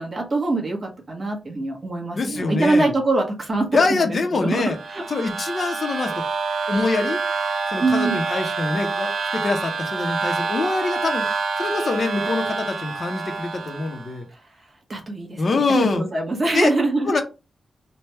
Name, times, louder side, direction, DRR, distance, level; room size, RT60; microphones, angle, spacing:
voice 1, 0.0-5.0 7.8-8.2 14.3-17.1, right 2 dB, 30° right, 0 dB, 1.1 m, -24 dB
voice 2, 2.2-2.9 3.7-4.8 5.1-6.1 6.7-7.2 7.7-11.3 11.6-14.3 15.4-16.0 16.5-16.7 17.0-17.2, left 3 dB, 45° left, 4 dB, 0.6 m, -24 dB
sound 1, 4.5-14.1, right 4 dB, 85° right, 0.5 m, -27 dB
3.3 x 2.2 x 4.3 m, 0.30 s
wide cardioid pair, 155°, 0 cm